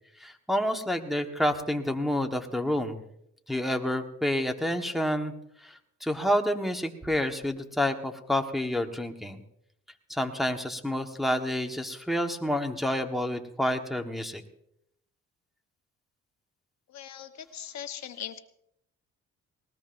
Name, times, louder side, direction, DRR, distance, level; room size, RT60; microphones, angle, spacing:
voice 1, 0.2-3.0 3.5-5.3 5.6-9.4 10.1-14.4, left 1 dB, ahead, 3 dB, 1.4 m, -29 dB
voice 2, 16.9-18.4, left 10 dB, 65° left, 8 dB, 1.2 m, -40 dB
20.0 x 19.5 x 2.6 m, 0.75 s
cardioid pair, 90°, 30 cm